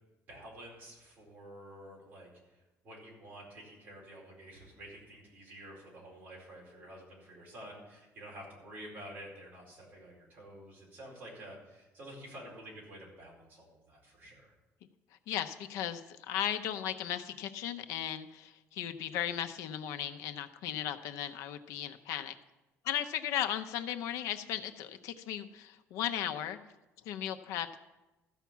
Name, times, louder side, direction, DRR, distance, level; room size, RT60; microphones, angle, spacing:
voice 1, 0.3-14.5, right 1 dB, 35° right, -4 dB, 4.5 m, -50 dB
voice 2, 15.3-22.3 22.8-26.6 27.0-27.7, left 10 dB, 90° left, 8 dB, 0.7 m, -36 dB
14.0 x 5.8 x 7.3 m, 1.0 s
cardioid pair, 175°, 5 cm